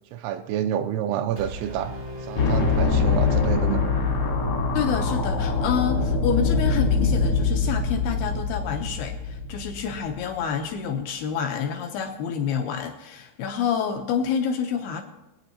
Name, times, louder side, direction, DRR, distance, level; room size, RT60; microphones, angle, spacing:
voice 1, 0.1-3.9, right 10 dB, 85° right, 7 dB, 2.8 m, -28 dB
Brass instrument, 1.4-4.4, equal, 60° right, 1.1 m, -38 dB
sound 1, 2.4-10.4, left 4 dB, 65° left, 1.5 m, -23 dB
voice 2, 4.7-15.0, left 7 dB, 85° left, 3 dB, 2.2 m, -28 dB
24.5 x 9.1 x 2.9 m, 0.95 s
omnidirectional pair, 5.5 m